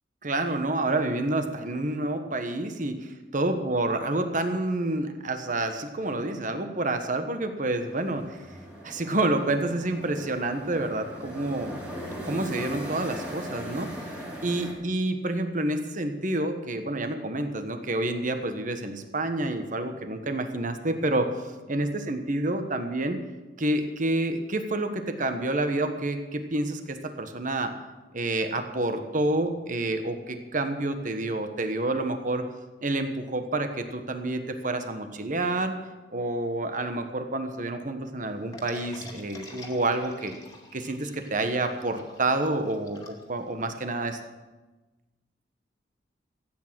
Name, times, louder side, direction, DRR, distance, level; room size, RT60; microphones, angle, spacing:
voice 1, 0.2-8.4 8.8-11.7 12.2-13.9 14.4-23.2 23.6-27.7 28.1-32.4 32.8-35.7 36.1-40.3 40.7-44.2, right 2 dB, 45° right, 7 dB, 1.3 m, -28 dB
sound 1, 7.8-14.7, equal, 10° right, 3.6 m, -39 dB
sound 2, 38.5-43.8, left 2 dB, 20° left, 2.3 m, -46 dB
15.0 x 8.9 x 7.5 m, 1.2 s
head